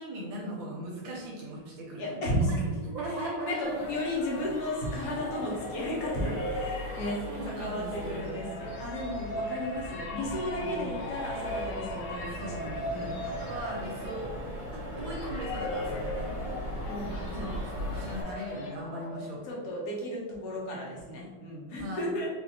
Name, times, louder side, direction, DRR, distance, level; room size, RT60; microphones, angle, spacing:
voice 1, 0.0-2.2 2.5-2.6 2.8-3.9 7.2-8.4 10.6-10.9 12.3-14.3 15.0-16.7 17.3-17.6 17.9-19.5 21.7-22.1, right 1 dB, 75° right, -3 dB, 1.3 m, -39 dB
voice 2, 2.0-2.7 3.1-13.2 16.8-17.6 19.4-22.3, equal, 60° left, -4 dB, 1.3 m, -34 dB
sound 1, 2.7-19.7, left 1 dB, 80° left, 1.5 m, -39 dB
Accelerating revving vroom, 3.6-18.2, equal, 50° right, 1.0 m, -39 dB
4.2 x 2.6 x 2.7 m, 1.2 s
omnidirectional pair, 2.2 m